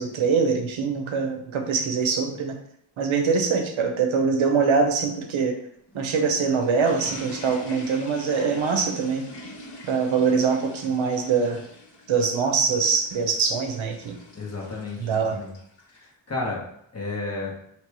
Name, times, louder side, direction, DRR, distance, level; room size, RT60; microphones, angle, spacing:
voice 1, 0.0-2.5 3.0-5.6 5.9-9.3 9.8-11.6 12.1-14.1 15.0-15.4, right 5 dB, 85° right, 4 dB, 0.8 m, -23 dB
sound 1, 5.7-16.0, left 1 dB, 55° left, 1.6 m, -44 dB
voice 2, 14.3-15.5 15.9-16.6 16.9-17.5, left 3 dB, 30° left, -2 dB, 1.4 m, -32 dB
3.2 x 2.9 x 4.6 m, 0.73 s
wide cardioid pair, 85°, 47 cm